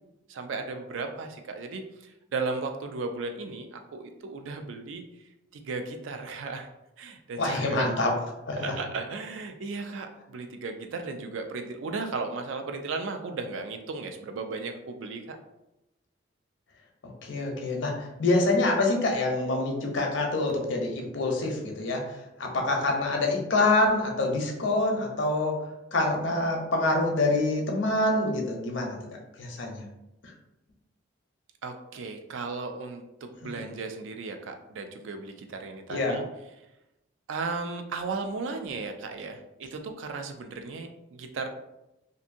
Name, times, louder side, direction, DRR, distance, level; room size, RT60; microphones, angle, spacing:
voice 1, 0.3-5.0 5.5-6.7 7.0-7.9 8.6-15.4 31.6-36.2 37.3-41.5, right 4 dB, 85° right, 5 dB, 0.4 m, -35 dB
voice 2, 7.4-8.1 8.5-8.7 17.0-25.6 25.9-29.0 29.4-29.8 30.2-30.3 33.4-33.6 35.9-36.2, left 2 dB, 75° left, 1 dB, 0.6 m, -26 dB
2.6 x 2.6 x 2.5 m, 0.92 s
head